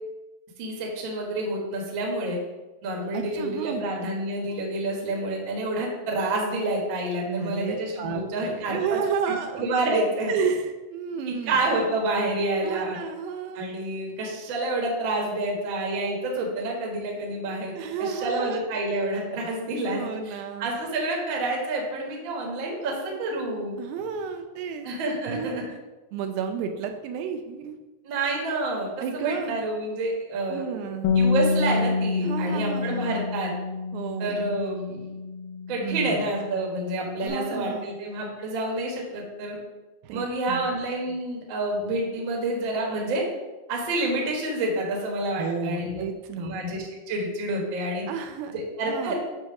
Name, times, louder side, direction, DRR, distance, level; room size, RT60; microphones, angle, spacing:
voice 1, 0.6-2.4 2.8-9.0 9.5-10.3 11.3-13.0 13.5-17.7 18.0-23.8 24.8-25.6 28.0-30.6 31.1-33.5 34.2-35.1 35.7-39.6 40.1-43.2 43.7-46.0 46.4-48.1 48.5-49.1, right 2 dB, 60° right, -1 dB, 1.3 m, -28 dB
voice 2, 3.1-3.8 7.3-9.6 10.3-11.7 12.6-13.6 17.8-18.6 19.9-20.8 23.8-24.9 25.3-25.6 26.1-27.8 29.0-29.6 30.5-31.2 32.2-33.3 33.9-34.5 35.8-36.3 37.2-37.9 40.0-40.7 45.4-46.6 48.1-48.5 48.8-49.1, right 6 dB, 85° right, 5 dB, 2.3 m, -32 dB
Bass guitar, 31.0-37.3, left 4 dB, 80° left, 1.7 m, -28 dB
7.2 x 2.8 x 5.8 m, 1.1 s
omnidirectional pair, 4.2 m